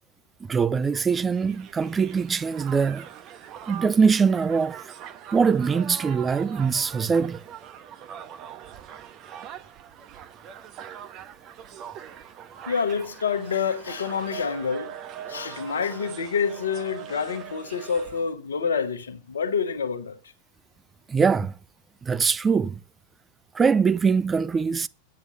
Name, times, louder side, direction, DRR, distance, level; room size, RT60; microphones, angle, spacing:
voice 1, 0.5-3.0 3.7-4.8 5.3-7.4 21.1-21.5 22.0-22.8 23.5-24.9, right 5 dB, 15° right, 0.5 m, -22 dB
Crowd, 0.9-18.3, right 9 dB, 35° right, 1.1 m, -42 dB
voice 2, 12.7-14.9 15.3-20.2, left 6 dB, 70° left, 1.0 m, -27 dB
8.7 x 7.9 x 6.7 m
figure-of-eight pair, 90°, 0 cm